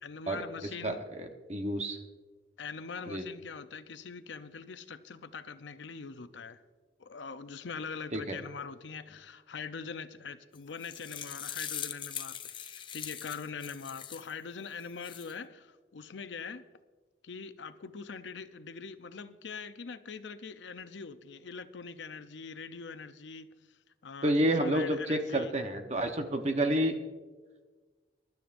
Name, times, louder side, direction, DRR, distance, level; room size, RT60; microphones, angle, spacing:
voice 1, 0.0-1.0 2.6-6.6 7.0-16.7 17.2-23.5 24.0-25.5, left 5 dB, 75° left, 0.6 m, -43 dB
voice 2, 0.8-2.0 3.1-3.3 8.1-8.4 24.2-27.0, right 1 dB, 35° right, 1.0 m, -29 dB
sound 1, 10.5-14.3 14.8-15.3, left 9 dB, 25° left, 0.4 m, -41 dB
23.5 x 12.0 x 2.6 m
head